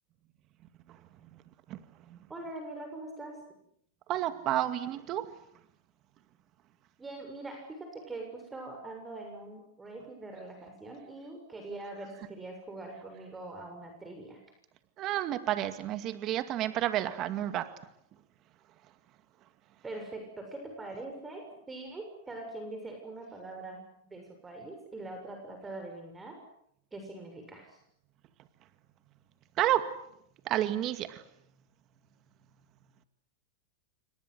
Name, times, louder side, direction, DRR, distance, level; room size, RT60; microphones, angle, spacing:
voice 1, 2.3-3.3 7.0-14.4 19.8-26.4 26.9-27.8, right 2 dB, 15° right, 4 dB, 7.0 m, -43 dB
voice 2, 4.1-5.3 15.0-17.8 29.6-30.0 30.5-31.2, right 12 dB, 40° right, 10 dB, 2.2 m, -30 dB
28.0 x 25.5 x 8.2 m, 0.74 s
hypercardioid pair, 125°, 0 cm